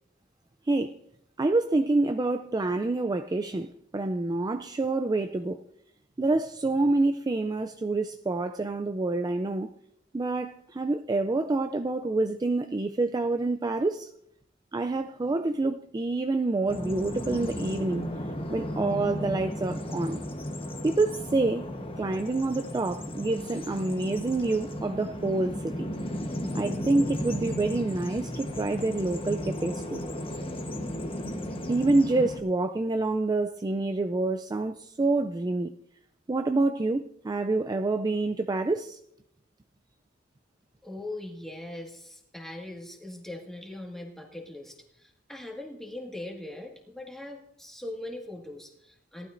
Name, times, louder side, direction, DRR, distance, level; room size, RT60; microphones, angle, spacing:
voice 1, 1.4-5.6 6.2-9.7 10.1-14.1 14.7-18.0 18.5-20.2 20.8-21.7 22.0-25.9 26.5-30.0 31.7-35.7 36.3-39.0, right 2 dB, 20° right, 0.4 m, -27 dB
Bird vocalization bird call bird song, 16.7-32.4, equal, 30° left, 1.1 m, -35 dB
voice 2, 40.8-49.3, left 1 dB, ahead, 1.8 m, -41 dB
18.5 x 12.0 x 2.6 m
head